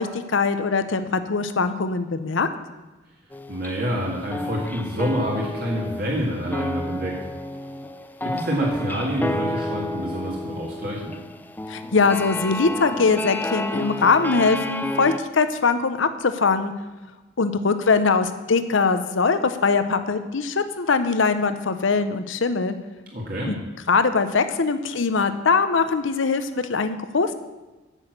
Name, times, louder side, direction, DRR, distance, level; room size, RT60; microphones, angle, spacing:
voice 1, 0.0-2.5 11.7-16.7 17.4-22.8 23.4-23.5 23.9-27.3, left 4 dB, 75° left, 10 dB, 0.7 m, -22 dB
sound 1, 3.3-4.0 4.3-15.2, left 1 dB, 10° left, 0.3 m, -31 dB
voice 2, 3.5-7.2 8.2-11.1 23.1-23.5, equal, 45° right, -4 dB, 1.9 m, -27 dB
9.8 x 6.4 x 7.8 m, 1.2 s
head